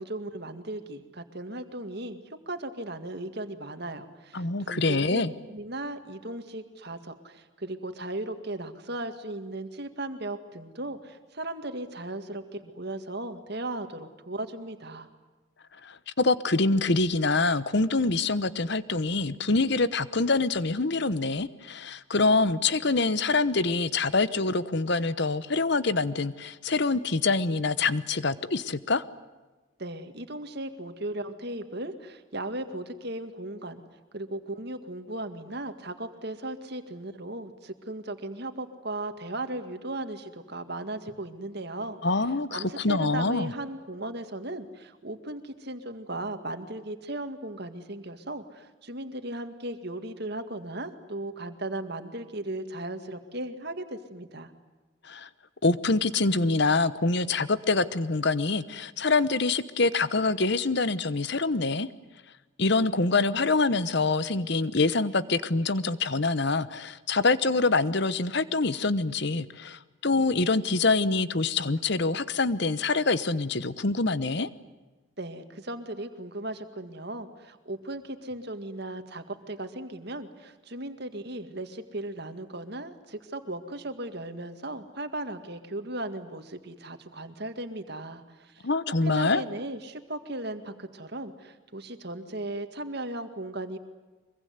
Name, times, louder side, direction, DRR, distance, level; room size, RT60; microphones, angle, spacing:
voice 1, 0.0-15.1 29.8-33.8 34.1-42.0 42.5-54.5 75.2-88.7 89.0-93.8, right 1 dB, 50° right, 8 dB, 2.0 m, -37 dB
voice 2, 4.3-5.3 15.8-29.0 42.0-43.5 55.0-55.3 55.6-61.9 62.6-74.5 88.6-89.4, left 3 dB, 55° left, 15 dB, 1.0 m, -25 dB
24.5 x 23.0 x 9.6 m, 1.2 s
head